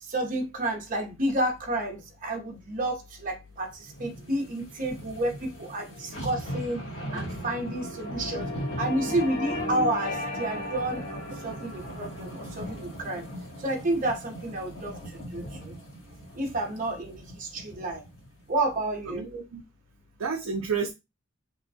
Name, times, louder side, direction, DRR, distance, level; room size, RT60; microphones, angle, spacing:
voice 1, 0.0-6.8 7.1-8.5 8.8-13.3 13.6-15.7 16.3-18.0 18.5-19.2, right 1 dB, 40° right, 0.7 m, -30 dB
sound 1, 3.8-18.3 18.7-18.8, equal, 65° left, 2.0 m, -40 dB
sound 2, 3.9-16.4, left 1 dB, 90° left, 1.2 m, -39 dB
voice 2, 19.1-19.6 20.2-20.9, right 5 dB, 75° right, 0.5 m, -30 dB
3.1 x 2.2 x 2.6 m
head